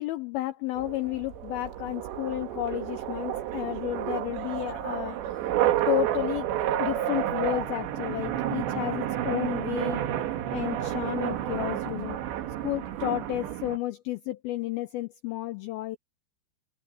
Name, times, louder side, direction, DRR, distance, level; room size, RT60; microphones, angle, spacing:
voice 1, 0.0-5.5 5.9-6.5 6.8-10.0 10.5-12.2 12.6-16.0, left 16 dB, 90° left, 2.1 m, -32 dB
sound 1, 0.8-13.8, right 11 dB, 75° right, 3.9 m, -30 dB
omnidirectional pair, 5.2 m